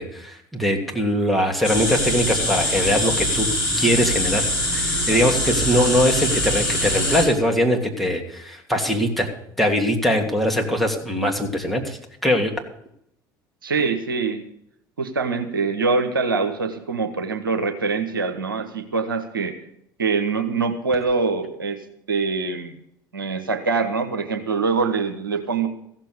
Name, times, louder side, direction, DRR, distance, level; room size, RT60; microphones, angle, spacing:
voice 1, 0.0-3.5 3.8-9.3 9.6-12.5, equal, ahead, 0 dB, 2.8 m, -22 dB
sound 1, 1.6-7.2, left 1 dB, 65° left, 5.9 m, -23 dB
voice 2, 13.6-14.5 15.0-19.6 20.0-21.8 22.1-22.7 23.1-25.7, right 4 dB, 85° right, 6 dB, 1.1 m, -24 dB
15.0 x 7.4 x 6.9 m, 0.73 s
figure-of-eight pair, 60°, 11 cm